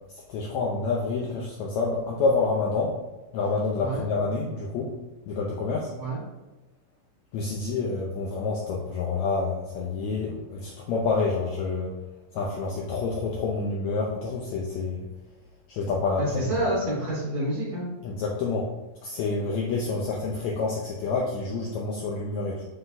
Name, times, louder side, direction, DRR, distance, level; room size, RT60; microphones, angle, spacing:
voice 1, 0.3-2.9 3.3-4.9 5.3-5.9 7.3-11.9 12.3-15.0 15.7-16.6 18.0-18.7 19.0-22.6, left 4 dB, 80° left, -2 dB, 1.6 m, -28 dB
voice 2, 16.2-17.8, right 1 dB, 50° right, -8 dB, 3.0 m, -28 dB
9.3 x 3.9 x 2.7 m, 1.1 s
omnidirectional pair, 4.0 m